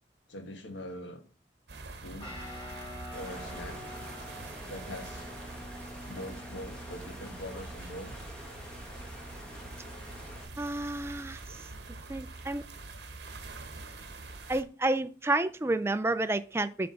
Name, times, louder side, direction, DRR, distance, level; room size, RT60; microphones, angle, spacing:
voice 1, 0.3-1.2 2.0-2.3 3.1-3.8 4.7-5.3 6.0-8.3, left 1 dB, 80° left, 6 dB, 1.3 m, -43 dB
sound 1, 1.7-14.6, right 2 dB, 60° right, 1.0 m, -45 dB
Guitar, 2.2-12.0, left 1 dB, 30° left, 2.1 m, -48 dB
Water, 3.1-10.4, equal, 5° left, 1.2 m, -47 dB
voice 2, 10.6-11.4 12.1-12.6 14.5-16.9, right 2 dB, 15° right, 12 dB, 0.3 m, -30 dB
7.8 x 3.4 x 5.3 m, 0.38 s
head